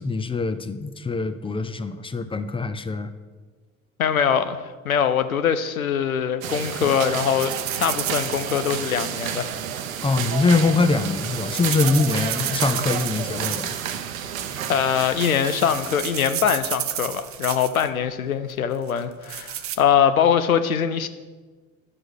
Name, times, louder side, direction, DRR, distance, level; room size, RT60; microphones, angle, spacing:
voice 1, 0.0-3.1 10.0-13.8, left 3 dB, 15° left, 11 dB, 0.5 m, -23 dB
voice 2, 4.0-7.5 7.8-9.5 14.7-21.1, left 8 dB, 85° left, 11 dB, 0.6 m, -22 dB
sound 1, 6.4-16.3, right 8 dB, 75° right, 0.7 m, -31 dB
sound 2, 7.4-9.3 10.8-13.9 14.1-14.6 15.1-15.2 15.5-17.9 18.9-19.8, right 12 dB, 35° right, 0.5 m, -32 dB
11.0 x 6.3 x 4.7 m, 1.4 s
figure-of-eight pair, 55°, 41 cm